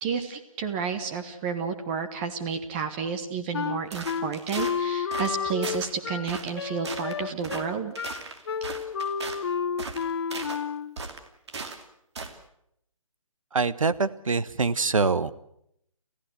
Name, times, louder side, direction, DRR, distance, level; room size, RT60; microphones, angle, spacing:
voice 1, 0.0-7.9, right 6 dB, 20° right, 7 dB, 1.2 m, -31 dB
Wind instrument woodwind instrument, 3.5-11.0, left 6 dB, 50° left, 0.9 m, -31 dB
sound 1, 3.9-4.8 5.1-5.4 5.6-5.9 6.3-6.6 6.8-7.1 7.4-7.6 8.0-9.4 9.8-10.6 11.0-11.8 12.2-12.4, right 4 dB, 55° right, 2.6 m, -37 dB
voice 2, 13.5-15.3, right 4 dB, 70° right, 15 dB, 1.1 m, -24 dB
28.0 x 15.5 x 7.9 m, 0.75 s
figure-of-eight pair, 150°, 18 cm